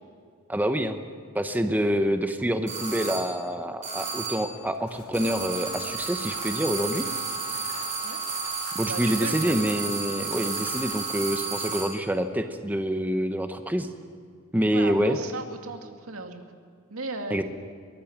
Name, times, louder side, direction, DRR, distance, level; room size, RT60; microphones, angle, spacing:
voice 1, 0.5-1.0 1.3-7.1 8.7-13.9 14.5-15.2 17.3-17.4, equal, 10° right, 7 dB, 0.9 m, -26 dB
sound 1, 2.7-3.4 3.8-4.6 5.1-12.0, right 4 dB, 35° right, 5.1 m, -32 dB
sound 2, 4.6-11.0, left 3 dB, 85° left, 5.4 m, -48 dB
voice 2, 8.8-9.6 14.7-16.4 16.9-17.4, right 3 dB, 90° right, 5 dB, 2.3 m, -36 dB
22.5 x 18.5 x 7.3 m, 2.2 s
head